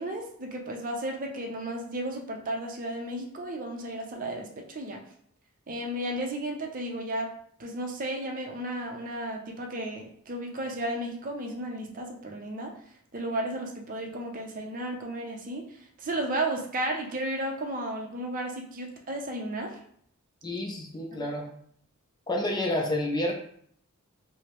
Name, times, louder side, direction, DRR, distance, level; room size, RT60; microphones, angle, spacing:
voice 1, 0.0-5.0 5.7-7.3 7.6-12.7 13.1-15.6 16.0-19.8 21.1-21.3, right 1 dB, 40° right, 2 dB, 0.5 m, -33 dB
voice 2, 20.4-21.5 22.3-23.3, left 1 dB, 20° left, 0 dB, 0.4 m, -29 dB
4.7 x 2.0 x 3.0 m, 0.64 s
head